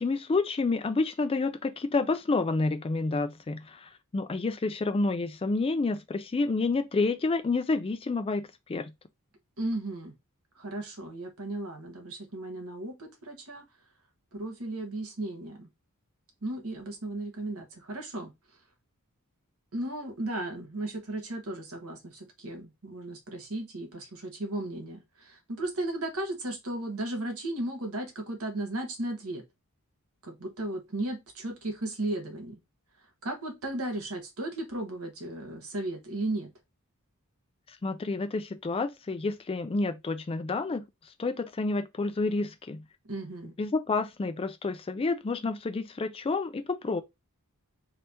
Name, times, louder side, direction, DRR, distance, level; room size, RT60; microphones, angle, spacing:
voice 1, 0.0-8.9 37.8-40.8 41.2-42.8 43.6-47.0, left 3 dB, 25° left, 0.4 m, -29 dB
voice 2, 9.6-10.1 10.6-13.6 14.3-15.7 16.4-18.3 19.7-29.4 30.2-32.6 33.2-36.5 43.0-43.5, right 1 dB, 65° right, 1.3 m, -35 dB
3.3 x 3.0 x 4.1 m
head